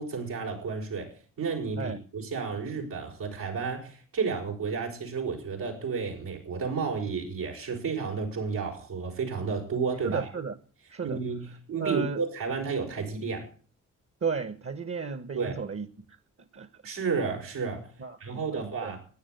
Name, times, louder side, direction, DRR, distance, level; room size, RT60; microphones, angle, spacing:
voice 1, 0.0-10.3 11.0-13.5 15.3-15.6 16.8-17.9 18.2-19.0, right 5 dB, 85° right, 5.8 m, -32 dB
voice 2, 10.0-10.5 10.9-11.2 11.8-12.2 14.2-15.9 16.5-16.7 18.0-18.9, right 5 dB, 40° right, 1.4 m, -33 dB
14.0 x 10.0 x 8.0 m
supercardioid pair, 55°, 33 cm